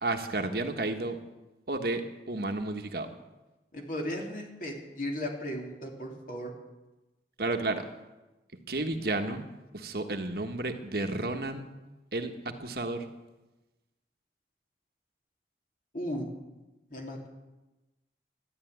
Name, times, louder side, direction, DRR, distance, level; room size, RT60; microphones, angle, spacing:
voice 1, 0.0-1.2 1.7-3.1 7.4-7.8 8.7-9.4 9.7-11.7 12.1-12.3 12.6-13.1, right 2 dB, 55° right, 5 dB, 1.4 m, -32 dB
voice 2, 3.7-6.5 15.9-16.3 16.9-17.3, equal, 50° left, 0 dB, 3.2 m, -36 dB
13.5 x 11.0 x 9.3 m, 1.1 s
head